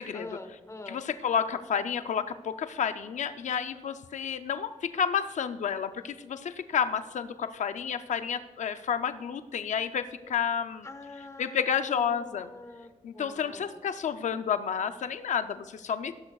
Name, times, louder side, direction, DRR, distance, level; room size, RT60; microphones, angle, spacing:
voice 1, 0.1-1.0 10.8-13.8, left 2 dB, 25° left, 8 dB, 1.1 m, -45 dB
voice 2, 0.9-10.9 11.4-12.5 13.0-16.1, left 7 dB, 85° left, 10 dB, 0.4 m, -30 dB
15.0 x 13.0 x 2.3 m, 1.4 s
wide cardioid pair, 115°, 12 cm